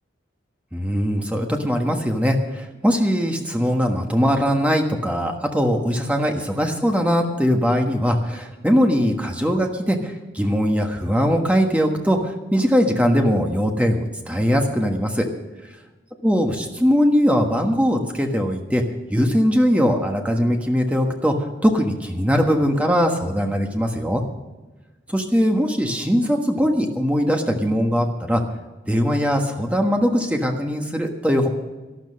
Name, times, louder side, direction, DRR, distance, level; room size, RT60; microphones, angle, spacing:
voice 1, 0.7-15.3 16.2-18.8 19.1-21.3 21.6-24.2 25.1-28.4 28.9-31.5, equal, 5° right, 3 dB, 1.3 m, -20 dB
12.5 x 12.0 x 6.4 m, 1.2 s
head